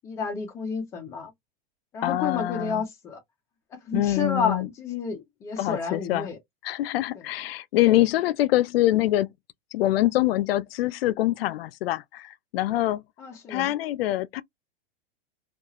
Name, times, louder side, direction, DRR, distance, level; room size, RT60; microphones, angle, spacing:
voice 1, 0.0-1.3 1.9-3.2 3.7-6.4 13.2-13.7, left 5 dB, 10° left, 0.4 m, -30 dB
voice 2, 2.0-2.8 3.9-4.7 5.6-6.3 6.6-9.3 9.7-13.0 13.5-14.4, left 15 dB, 80° left, 0.4 m, -24 dB
2.4 x 2.3 x 2.8 m
supercardioid pair, 170°, 29 cm